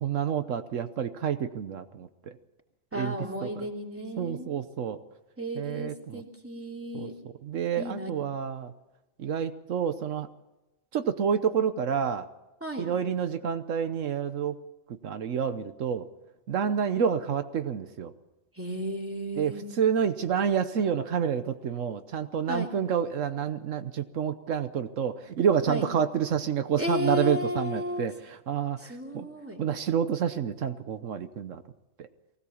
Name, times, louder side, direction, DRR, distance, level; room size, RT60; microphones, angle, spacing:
voice 1, 0.0-2.1 2.9-3.1 3.4-3.7 4.2-5.0 5.6-6.2 6.9-7.1 7.4-8.7 9.2-10.3 10.9-12.3 12.8-14.6 15.0-16.1 16.5-18.1 19.4-29.3 29.6-31.6 32.0-32.1, right 7 dB, 80° right, 9 dB, 1.2 m, -28 dB
voice 2, 2.9-4.5 5.4-7.1 7.8-8.2 12.6-12.9 18.5-19.6 22.5-22.7 25.7-25.9 26.8-28.1 28.8-29.6, left 1 dB, 10° right, 0 dB, 3.0 m, -34 dB
23.5 x 17.0 x 7.2 m, 1.0 s
omnidirectional pair, 1.3 m